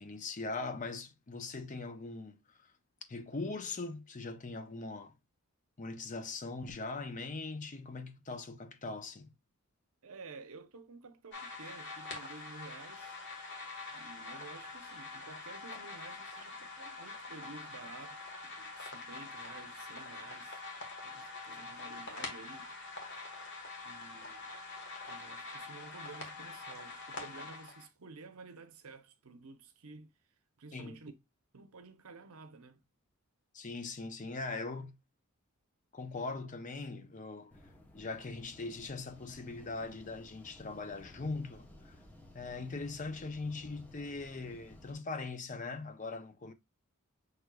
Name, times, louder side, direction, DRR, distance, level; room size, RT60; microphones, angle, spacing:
voice 1, 0.0-2.4 3.1-5.1 5.8-9.3 30.7-31.0 33.5-35.0 35.9-37.5 37.9-41.9 42.3-46.5, left 3 dB, 35° left, 0.6 m, -41 dB
voice 2, 10.0-13.2 13.9-20.6 21.0-22.7 23.8-24.5 25.0-30.1 30.6-31.1 31.5-32.8, right 4 dB, 80° right, 0.8 m, -52 dB
sound 1, 11.3-27.9, left 3 dB, 55° left, 1.2 m, -45 dB
sound 2, 37.5-44.9, left 1 dB, 10° left, 0.8 m, -56 dB
6.2 x 3.3 x 2.3 m
head